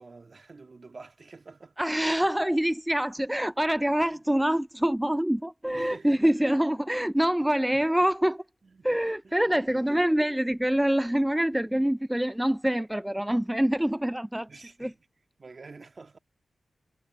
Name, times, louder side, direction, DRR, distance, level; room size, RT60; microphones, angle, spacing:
voice 1, 0.0-1.8 2.1-2.3 4.1-4.2 5.7-6.5 7.4-7.8 8.6-8.9 9.2-10.2 14.5-14.9 15.4-16.2, right 3 dB, 50° right, 1.9 m, -48 dB
voice 2, 1.8-8.4 8.8-14.5 14.8-14.9, right 1 dB, 10° right, 0.4 m, -25 dB
cardioid pair, 50°, 0 cm